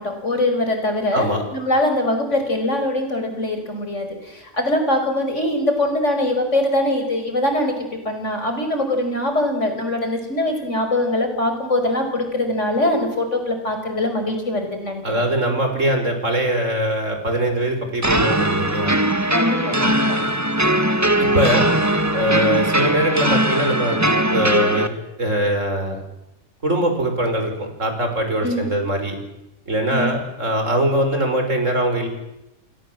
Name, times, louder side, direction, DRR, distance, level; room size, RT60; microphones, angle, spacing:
voice 1, 0.0-15.2 19.3-20.2 28.4-28.6 29.9-30.1, left 1 dB, 70° left, 5 dB, 5.6 m, -22 dB
voice 2, 1.1-1.4 15.0-19.0 21.2-21.7 22.1-24.0 24.3-24.9 25.2-26.0 26.6-29.2 29.7-32.1, right 1 dB, 80° right, 5 dB, 5.9 m, -22 dB
sound 1, 18.0-24.9, right 1 dB, 15° right, 1.4 m, -20 dB
29.5 x 23.5 x 7.7 m, 0.92 s
omnidirectional pair, 1.3 m